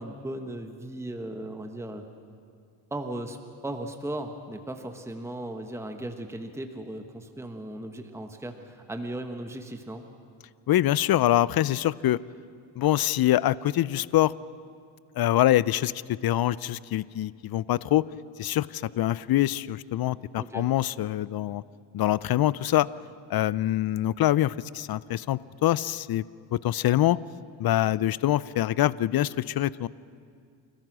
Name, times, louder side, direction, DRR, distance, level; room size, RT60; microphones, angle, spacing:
voice 1, 0.0-2.1 2.9-3.4 3.6-10.0 20.4-20.7, right 1 dB, 5° right, 5 dB, 1.4 m, -37 dB
voice 2, 10.7-12.2 12.8-14.3 15.2-18.0 18.4-21.6 21.9-22.9 23.3-26.2 26.5-27.2 27.6-29.9, left 13 dB, 50° left, 20 dB, 0.6 m, -24 dB
30.0 x 14.5 x 6.2 m, 2.3 s
cardioid pair, 80°, 49 cm